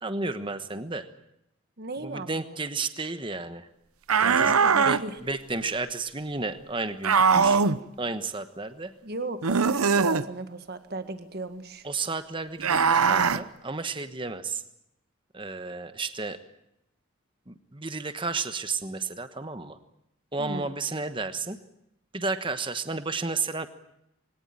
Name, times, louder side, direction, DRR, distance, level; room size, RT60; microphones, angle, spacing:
voice 1, 0.0-1.1 2.0-3.7 4.2-4.5 4.8-7.6 8.0-8.9 11.8-14.6 15.3-16.4 17.5-19.8 20.3-21.6 22.1-23.7, right 3 dB, 25° right, 10 dB, 1.2 m, -32 dB
voice 2, 1.8-2.6 4.3-5.2 9.0-11.9 20.4-20.7, right 2 dB, 45° right, 8 dB, 1.7 m, -36 dB
sound 1, 4.1-5.0 7.0-7.8 9.4-10.2 12.6-13.4, right 5 dB, 90° right, 0.9 m, -21 dB
23.0 x 18.0 x 9.0 m, 0.82 s
head